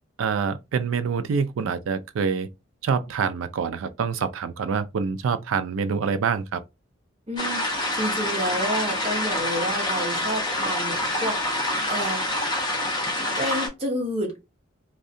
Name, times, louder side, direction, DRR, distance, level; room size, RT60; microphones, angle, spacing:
voice 1, 0.2-2.5 2.8-6.6, right 6 dB, 85° right, 0.4 m, -26 dB
voice 2, 7.3-12.3 13.4-14.4, equal, 30° right, 0.9 m, -30 dB
sound 1, 7.4-13.7, left 1 dB, 20° left, 0.7 m, -26 dB
2.7 x 2.2 x 2.5 m
head